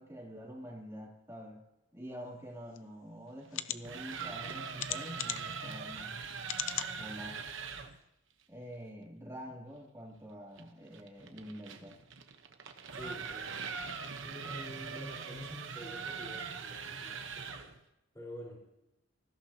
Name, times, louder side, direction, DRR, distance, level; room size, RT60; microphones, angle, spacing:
voice 1, 0.0-1.6 1.9-6.2 7.0-7.4 8.5-12.0, equal, 15° right, -2 dB, 3.1 m, -46 dB
sound 1, 2.7-2.8 3.5-3.8 4.8-5.6 6.4-6.9 7.5-7.6 7.9-8.0, left 12 dB, 65° left, 0.6 m, -36 dB
sound 2, 3.6-8.0 10.6-17.8, right 5 dB, 65° right, 1.1 m, -42 dB
voice 2, 12.9-13.6 14.2-17.8 18.1-18.8, equal, 15° left, -4 dB, 4.8 m, -48 dB
20.0 x 15.5 x 2.9 m, 0.88 s
head